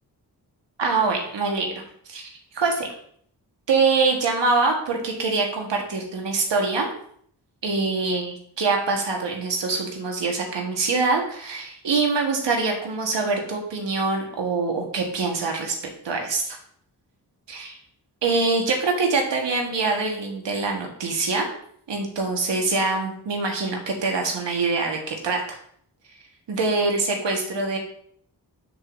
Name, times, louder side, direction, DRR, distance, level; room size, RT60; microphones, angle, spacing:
voice 1, 0.8-1.8 2.1-2.9 3.7-6.9 7.6-15.7 16.0-16.6 17.5-17.8 18.2-21.5 21.9-25.6 26.5-27.8, right 3 dB, 85° right, 1 dB, 1.5 m, -24 dB
7.0 x 6.9 x 2.6 m, 0.63 s
cardioid pair, 40°, 42 cm